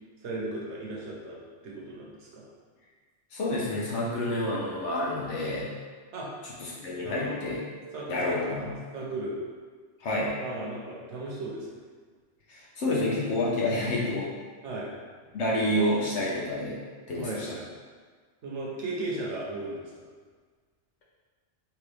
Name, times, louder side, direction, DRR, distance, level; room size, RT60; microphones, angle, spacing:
voice 1, 0.2-1.4 1.6-2.5 6.1-6.3 7.0-7.6 7.9-8.4 8.9-9.4 10.4-11.8 14.6-15.0 17.2-17.7 18.4-20.1, right 2 dB, 75° right, -4 dB, 1.1 m, -36 dB
voice 2, 3.3-5.7 6.4-7.6 8.1-8.7 10.0-10.3 12.5-14.3 15.3-16.8 17.1-17.5, left 1 dB, 80° left, -5 dB, 1.0 m, -28 dB
3.2 x 3.0 x 3.2 m, 1.6 s
omnidirectional pair, 1.2 m